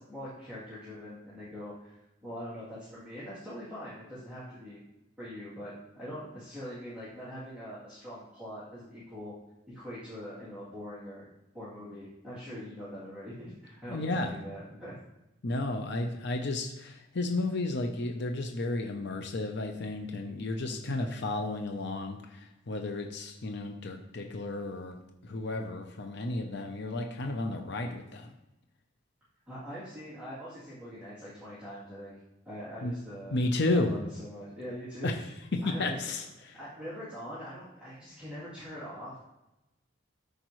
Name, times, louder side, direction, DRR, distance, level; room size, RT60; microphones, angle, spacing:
voice 1, 0.0-4.8 5.2-9.3 9.7-11.3 11.5-14.9 20.6-20.8 29.5-32.1 32.4-33.4 33.7-35.2 35.6-36.0 36.5-39.2, equal, 5° right, -14 dB, 3.0 m, -43 dB
voice 2, 13.9-14.3 15.4-25.0 25.2-28.3 32.8-32.9 33.3-33.9 35.0-35.2 35.5-36.5, left 2 dB, 60° left, 4 dB, 0.8 m, -32 dB
13.0 x 5.0 x 3.2 m, 0.94 s
head